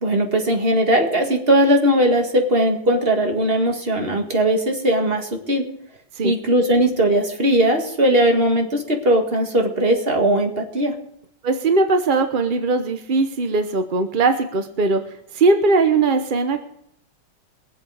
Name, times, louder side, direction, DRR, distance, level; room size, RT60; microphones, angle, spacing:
voice 1, 0.0-5.6 6.2-10.9, right 1 dB, 30° right, 2 dB, 2.0 m, -19 dB
voice 2, 11.4-15.0 15.3-16.6, right 3 dB, 55° right, 7 dB, 0.5 m, -19 dB
22.5 x 7.9 x 4.8 m, 0.72 s
omnidirectional pair, 2.2 m